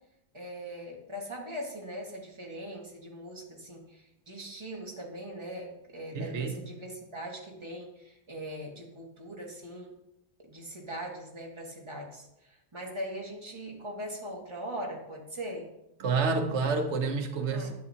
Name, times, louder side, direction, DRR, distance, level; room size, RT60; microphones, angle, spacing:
voice 1, 0.3-9.9 10.4-15.7 17.5-17.7, equal, 25° right, -1 dB, 1.6 m, -41 dB
voice 2, 6.1-6.6 16.0-17.7, right 4 dB, 85° right, 6 dB, 1.1 m, -29 dB
10.5 x 7.8 x 2.8 m, 0.86 s
omnidirectional pair, 1.1 m